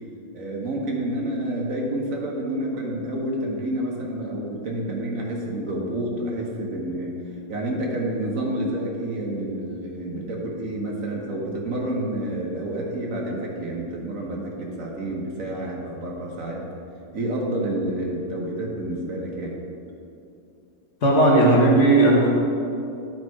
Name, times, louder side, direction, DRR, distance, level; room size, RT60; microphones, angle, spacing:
voice 1, 0.3-7.1 7.5-16.6 17.1-19.6, right 1 dB, 60° right, -2 dB, 1.4 m, -29 dB
voice 2, 21.0-22.3, right 2 dB, 50° left, -3 dB, 1.5 m, -16 dB
10.5 x 4.5 x 4.7 m, 2.6 s
omnidirectional pair, 1.7 m